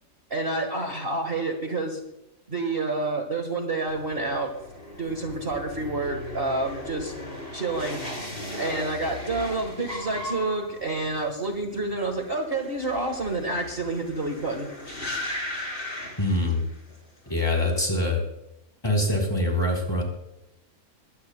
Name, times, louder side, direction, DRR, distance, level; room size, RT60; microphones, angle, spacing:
voice 1, 0.3-2.0 2.5-4.5 5.0-7.1 7.5-8.0 8.6-14.7, right 2 dB, 40° right, 3 dB, 1.7 m, -28 dB
sound 1, 3.9-17.0 17.3-17.8, left 1 dB, 35° left, 4.2 m, -37 dB
voice 2, 16.2-16.6 17.3-18.2 18.8-20.0, left 1 dB, 15° left, 1 dB, 3.7 m, -24 dB
22.0 x 17.5 x 2.3 m, 0.88 s
omnidirectional pair, 1.6 m